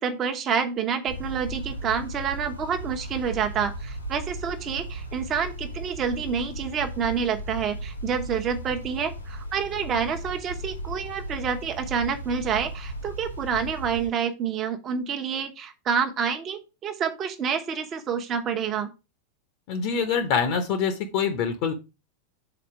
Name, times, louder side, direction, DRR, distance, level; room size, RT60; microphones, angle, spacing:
voice 1, 0.0-18.9, right 7 dB, 30° right, 6 dB, 1.0 m, -28 dB
sound 1, 1.1-14.1, right 1 dB, 90° left, 1.7 m, -36 dB
voice 2, 19.7-21.7, left 6 dB, 45° left, 9 dB, 0.9 m, -25 dB
7.1 x 4.3 x 4.6 m, 0.28 s
figure-of-eight pair, 90°, 0 cm